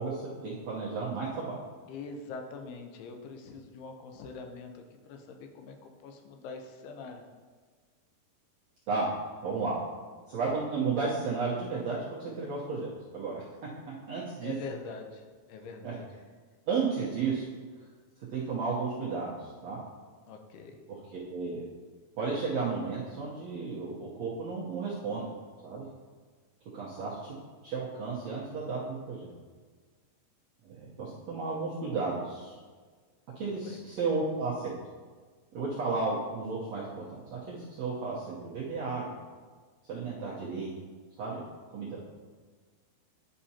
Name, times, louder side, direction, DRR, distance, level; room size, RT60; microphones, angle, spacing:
voice 1, 0.0-1.6 8.9-9.1 9.4-9.8 10.3-13.4 13.8-14.5 15.8-15.9 16.7-17.5 18.3-19.8 21.3-21.6 22.1-25.3 25.6-25.9 26.7-27.4 27.6-29.3 30.6-32.6 33.3-34.7 35.5-39.2 39.8-40.7 41.2-41.4 41.7-42.0, right 4 dB, 75° right, -7 dB, 1.5 m, -33 dB
voice 2, 1.9-7.2 14.4-16.1 20.3-20.8 33.4-33.8, left 4 dB, 80° left, 4 dB, 2.7 m, -44 dB
11.0 x 5.8 x 2.8 m, 1.5 s
omnidirectional pair, 4.5 m